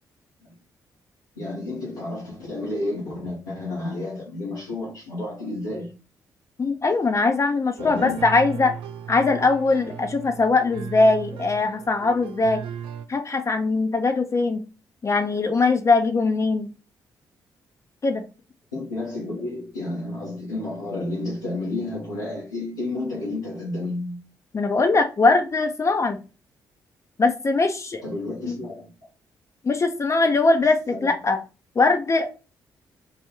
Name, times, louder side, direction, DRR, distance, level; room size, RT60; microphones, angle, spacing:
voice 1, 1.4-5.9 7.8-8.2 18.7-24.2 28.0-28.9 30.9-31.1, left 2 dB, 90° left, 0.8 m, -31 dB
voice 2, 6.6-8.7 9.1-12.6 13.1-14.6 15.0-16.7 18.0-18.2 24.5-26.2 27.2-28.0 28.4-28.6 29.6-31.4 31.8-32.3, left 3 dB, 30° left, 0.5 m, -21 dB
sound 1, 7.8-13.1, right 8 dB, 65° right, 0.4 m, -37 dB
3.4 x 2.2 x 3.0 m
hypercardioid pair, 40°, 10 cm